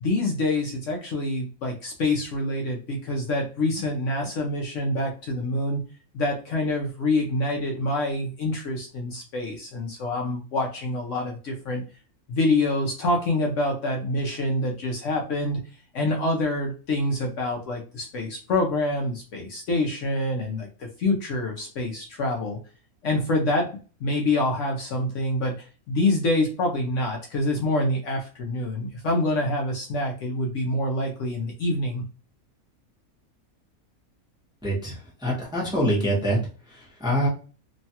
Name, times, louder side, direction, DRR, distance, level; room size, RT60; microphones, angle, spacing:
voice 1, 0.0-5.8 6.1-11.8 12.3-15.6 15.9-22.6 23.0-23.7 24.0-32.0, left 2 dB, 65° left, 0 dB, 0.9 m, -26 dB
voice 2, 34.6-36.4 36.7-37.3, equal, 5° right, -3 dB, 0.7 m, -25 dB
3.0 x 2.2 x 2.8 m, 0.36 s
omnidirectional pair, 1.5 m